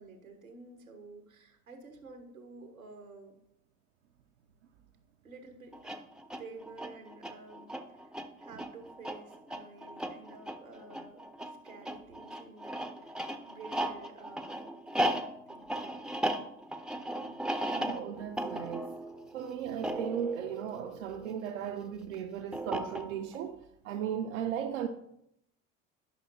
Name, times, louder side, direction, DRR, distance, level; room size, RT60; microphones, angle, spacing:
voice 1, 0.0-3.4 5.2-5.9 6.4-13.1 13.5-14.7 15.5-16.0, right 3 dB, 90° right, 1.3 m, -51 dB
sound 1, 5.7-21.5 22.5-23.4, right 1 dB, ahead, 0.5 m, -37 dB
voice 2, 17.7-18.9 19.3-24.9, right 8 dB, 70° right, 0.6 m, -36 dB
10.5 x 5.7 x 2.7 m
figure-of-eight pair, 70°, 40 cm